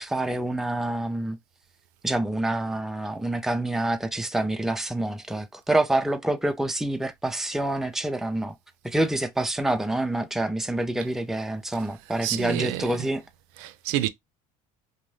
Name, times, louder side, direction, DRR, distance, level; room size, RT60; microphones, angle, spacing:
voice 1, 0.0-1.4 2.0-8.5 8.8-13.2, right 1 dB, ahead, 0.4 m, -27 dB
voice 2, 12.2-13.1 13.6-14.1, right 14 dB, 75° right, 0.4 m, -29 dB
2.5 x 2.1 x 3.2 m
supercardioid pair, 85°, 18 cm